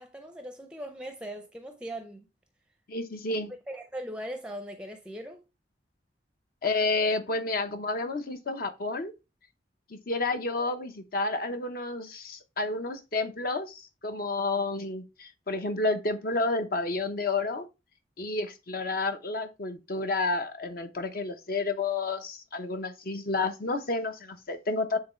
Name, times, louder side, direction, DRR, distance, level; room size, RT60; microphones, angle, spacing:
voice 1, 0.0-2.3 3.7-5.4, right 1 dB, 5° right, 0.6 m, -39 dB
voice 2, 2.9-3.5 6.6-9.1 9.9-17.7 18.2-25.0, left 3 dB, 55° left, 0.9 m, -30 dB
8.7 x 3.8 x 3.1 m
head